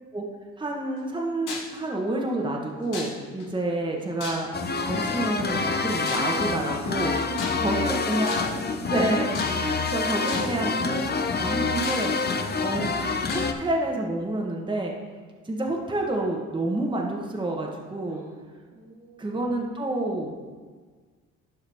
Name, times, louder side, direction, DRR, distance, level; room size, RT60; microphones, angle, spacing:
voice 1, 0.6-4.5 4.8-7.2 7.6-8.5 8.9-12.2 12.6-13.0 13.3-14.9 15.4-18.2 19.2-20.4, right 2 dB, 15° right, 0 dB, 1.2 m, -28 dB
sound 1, 1.5-1.8 2.9-3.4 4.2-4.7 6.0-6.4 7.3-7.8 8.3-8.7 9.3-9.8 10.3-10.6 11.3-11.4 11.8-12.5 13.3-13.5, left 4 dB, 70° left, 1.8 m, -36 dB
sound 2, 4.5-13.5, left 4 dB, 30° left, 0.7 m, -27 dB
voice 2, 7.2-9.0 12.4-12.6 18.1-18.4 18.7-19.7, right 2 dB, 70° right, -4 dB, 2.3 m, -43 dB
11.5 x 4.6 x 3.5 m, 1.5 s
supercardioid pair, 70°, 32 cm